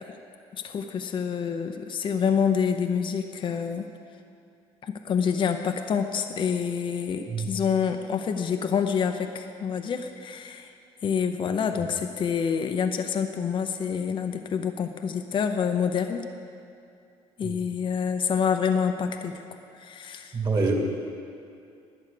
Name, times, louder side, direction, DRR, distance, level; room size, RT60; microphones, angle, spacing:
voice 1, 0.6-3.8 4.8-10.7 11.0-16.2 17.4-19.4 19.7-20.4, left 7 dB, 45° left, 6 dB, 0.7 m, -27 dB
voice 2, 20.3-20.8, right 4 dB, 35° right, 1 dB, 2.4 m, -26 dB
12.0 x 9.3 x 6.8 m, 2.5 s
cardioid pair, 90°, 12 cm